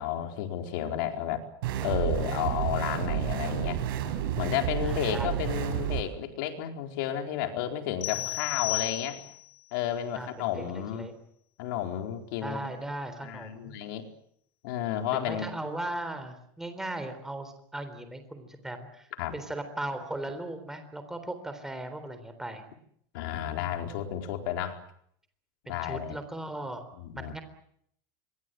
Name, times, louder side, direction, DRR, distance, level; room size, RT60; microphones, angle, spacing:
voice 1, 0.0-1.4 1.8-3.8 4.4-9.2 9.7-11.1 11.6-12.6 13.2-14.1 14.6-15.5 19.2-19.3 23.1-24.8 25.7-26.2 26.9-27.3, left 10 dB, 65° left, 6 dB, 4.3 m, -32 dB
sound 1, 1.6-6.0, right 11 dB, 80° right, 6.0 m, -30 dB
voice 2, 4.8-5.5 8.1-8.3 10.1-11.1 12.4-13.8 15.1-22.6 25.7-26.8 27.2-27.4, right 1 dB, 5° right, 8 dB, 3.7 m, -38 dB
sound 2, 8.0-9.5, left 16 dB, 50° left, 1.9 m, -33 dB
27.0 x 23.0 x 7.9 m, 0.69 s
supercardioid pair, 165°, 12 cm